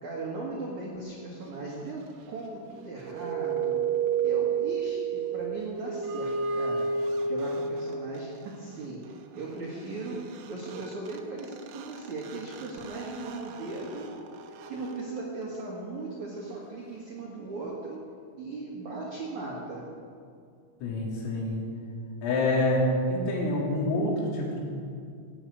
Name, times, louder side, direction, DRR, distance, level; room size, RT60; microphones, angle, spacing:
voice 1, 0.0-3.8 4.2-6.9 7.3-14.1 14.7-18.0 18.4-19.8, right 2 dB, 55° right, -4 dB, 2.2 m, -38 dB
granulated plastic rub, 2.8-8.2 10.1-10.2 10.4-15.8, right 5 dB, 80° right, 3.1 m, -32 dB
voice 2, 20.8-21.6 22.2-22.8 23.1-24.6, left 2 dB, 80° left, -3 dB, 5.5 m, -27 dB
15.0 x 9.2 x 8.7 m, 2.3 s
omnidirectional pair, 5.9 m